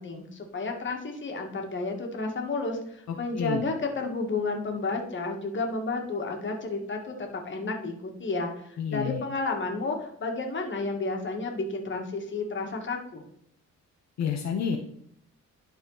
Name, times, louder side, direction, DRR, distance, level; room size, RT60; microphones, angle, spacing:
voice 1, 0.0-13.2, left 3 dB, 40° left, 2 dB, 1.9 m, -31 dB
voice 2, 3.1-3.6 8.8-9.2 14.2-14.8, left 7 dB, 65° left, 2 dB, 1.0 m, -29 dB
11.5 x 4.3 x 4.0 m, 0.69 s
cardioid pair, 90°, 30 cm